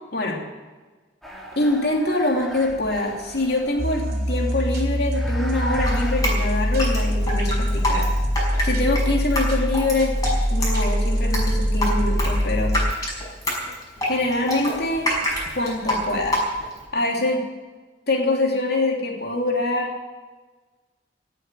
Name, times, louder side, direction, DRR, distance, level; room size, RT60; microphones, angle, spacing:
sound 1, 1.2-7.2, right 1 dB, ahead, 2.5 m, -38 dB
voice 1, 1.6-8.1 8.6-10.1 10.5-12.7 14.1-15.1 15.5-16.4 16.9-17.4 18.1-19.9, left 2 dB, 60° left, -1 dB, 3.0 m, -24 dB
sound 2, 3.8-12.9, equal, 55° right, 4.0 m, -23 dB
Drip, 5.9-16.8, left 1 dB, 20° left, 5.8 m, -27 dB
18.0 x 7.7 x 9.2 m, 1.3 s
head